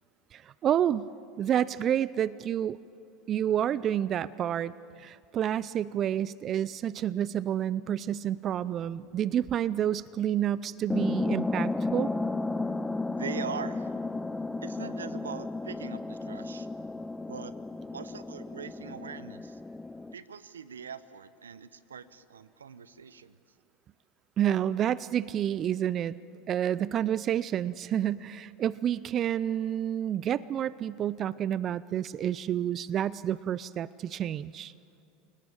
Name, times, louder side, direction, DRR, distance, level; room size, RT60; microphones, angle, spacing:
voice 1, 0.3-1.1 1.4-2.8 3.3-12.1 24.4-26.2 26.5-34.7, right 10 dB, 40° right, 19 dB, 0.5 m, -29 dB
sound 1, 10.9-20.1, left 2 dB, 10° left, 0.7 m, -33 dB
voice 2, 13.2-13.9 14.6-16.7 17.3-17.5 17.9-19.6 20.1-23.4, right 6 dB, 90° right, 16 dB, 0.8 m, -42 dB
29.0 x 18.5 x 8.9 m, 2.4 s
hypercardioid pair, 85°, 0 cm